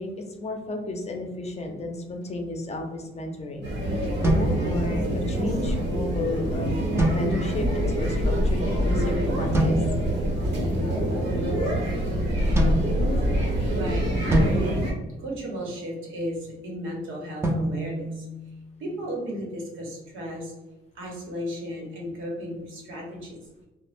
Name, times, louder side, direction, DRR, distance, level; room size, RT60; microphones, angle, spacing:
voice 1, 0.0-9.8, left 2 dB, 35° left, 3 dB, 0.6 m, -33 dB
sound 1, 3.6-14.9, equal, 60° right, 1.1 m, -25 dB
sound 2, 4.2-5.3 7.0-7.8 9.5-10.2 12.5-13.6 14.3-15.8 17.4-18.9, right 1 dB, 15° right, 0.6 m, -27 dB
voice 2, 10.5-11.0 13.7-14.7 15.2-18.3 18.8-20.5 20.9-23.4, equal, 80° right, -1 dB, 1.0 m, -34 dB
3.1 x 2.1 x 2.5 m, 1.0 s
cardioid pair, 90°, 20 cm